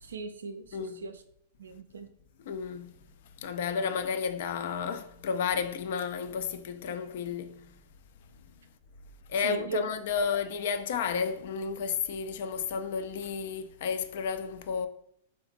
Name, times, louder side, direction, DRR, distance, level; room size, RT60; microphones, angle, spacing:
voice 1, 0.0-1.2 1.6-2.1 9.4-9.9, right 2 dB, 85° right, 0.3 m, -37 dB
voice 2, 0.7-1.1 2.5-3.0 3.4-7.7 9.3-14.9, left 6 dB, 65° left, 0.3 m, -32 dB
3.3 x 2.8 x 2.5 m
hypercardioid pair, 110°, 0 cm